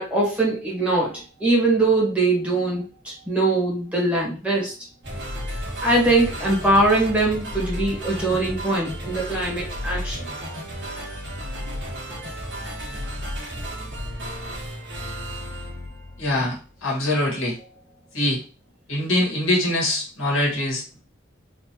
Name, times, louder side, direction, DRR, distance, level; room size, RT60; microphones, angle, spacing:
voice 1, 0.0-4.7 5.8-10.5, right 2 dB, 5° right, -5 dB, 1.7 m, -22 dB
sound 1, 5.0-16.6, equal, 60° right, 1.8 m, -33 dB
voice 2, 16.2-17.6 18.1-18.4 18.9-21.0, left 1 dB, 90° left, -3 dB, 1.8 m, -23 dB
4.2 x 2.9 x 3.0 m, 0.38 s
head